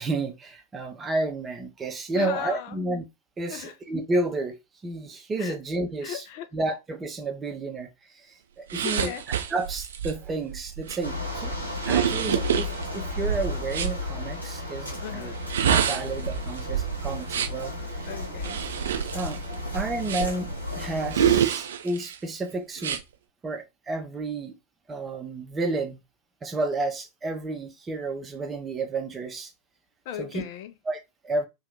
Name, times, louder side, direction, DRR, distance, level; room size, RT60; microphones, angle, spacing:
voice 1, 0.0-3.0 3.4-4.6 4.8-6.2 6.5-7.9 8.2-9.1 9.5-11.5 11.8-15.3 15.6-18.1 19.1-19.4 19.7-20.5 20.8-23.0 23.4-24.6 24.9-26.0 26.4-29.5 30.2-30.4 30.9-31.5, right 2 dB, 20° right, 0.6 m, -31 dB
voice 2, 2.1-2.8 3.5-3.8 5.4-5.6 6.0-6.5 8.8-9.2 15.0-15.4 18.0-18.7 30.0-30.7, left 9 dB, 45° left, 0.5 m, -37 dB
sound 1, 8.7-14.0 15.3-17.7 18.4-20.5 21.1-22.2 22.8-23.0, right 9 dB, 65° right, 0.5 m, -27 dB
sound 2, 11.0-21.4, left 2 dB, 90° left, 1.0 m, -34 dB
2.7 x 2.3 x 3.5 m
figure-of-eight pair, 90°, 0 cm